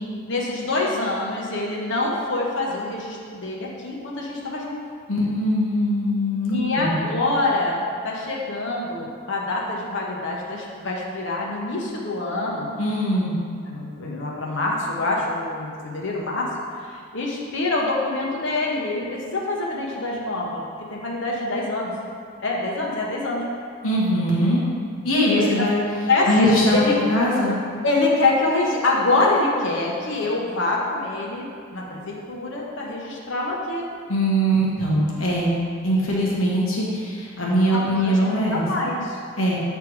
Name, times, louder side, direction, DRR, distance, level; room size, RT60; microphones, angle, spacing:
voice 1, 0.2-4.8 6.5-12.7 13.6-16.5 16.8-20.6 20.9-21.9 22.4-23.4 25.3-25.7 26.1-26.9 27.8-33.8 37.7-39.2, left 2 dB, 55° left, -3 dB, 1.0 m, -25 dB
voice 2, 5.1-7.0 12.8-13.3 23.8-24.6 25.0-25.8 26.3-26.8 27.1-27.5 34.1-35.5 35.8-38.6 39.4-39.6, equal, 75° left, -5 dB, 1.4 m, -21 dB
8.2 x 3.5 x 4.7 m, 2.2 s
head